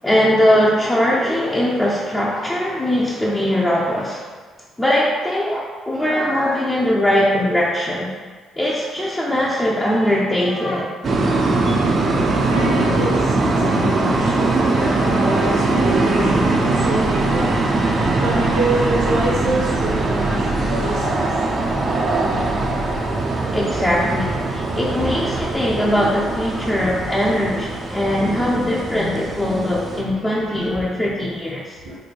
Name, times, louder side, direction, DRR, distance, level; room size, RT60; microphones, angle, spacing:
voice 1, 0.0-4.2 4.8-8.1 8.6-10.9 23.5-31.8, left 1 dB, 15° left, -6 dB, 0.6 m, -20 dB
sound 1, 11.0-30.0, right 2 dB, 45° right, 0.5 m, -21 dB
voice 2, 12.3-17.6 18.2-21.3 26.6-26.7 31.8-31.9, right 2 dB, 80° right, -8 dB, 1.4 m, -26 dB
sound 2, 16.6-28.1 28.3-28.4 30.1-30.7, right 1 dB, 60° right, 1.0 m, -33 dB
3.2 x 2.2 x 4.2 m, 1.5 s
hypercardioid pair, 55°, 0 cm